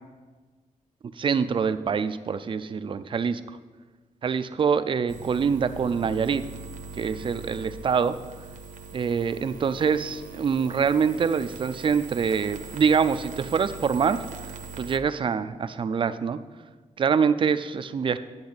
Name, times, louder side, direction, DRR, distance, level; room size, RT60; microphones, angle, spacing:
voice 1, 1.2-3.4 4.2-6.4 6.9-8.2 8.9-14.2 14.8-16.4 17.0-18.2, right 6 dB, 40° right, 12 dB, 0.4 m, -25 dB
sound 1, 5.1-15.0, right 4 dB, 70° right, 0.8 m, -41 dB
10.5 x 8.4 x 4.0 m, 1.4 s
wide cardioid pair, 155°, 14 cm